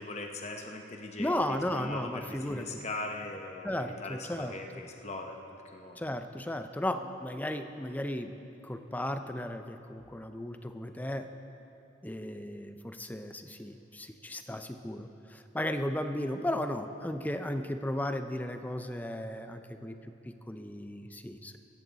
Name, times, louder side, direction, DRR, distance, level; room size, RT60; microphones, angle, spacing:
voice 1, 0.0-5.4 5.7-6.0, left 2 dB, 35° left, 2 dB, 0.9 m, -40 dB
voice 2, 1.2-2.8 3.6-4.6 6.0-8.3 8.6-11.3 12.0-20.0 20.3-21.6, left 1 dB, 10° left, 8 dB, 0.5 m, -35 dB
16.5 x 14.0 x 4.0 m, 3.0 s
head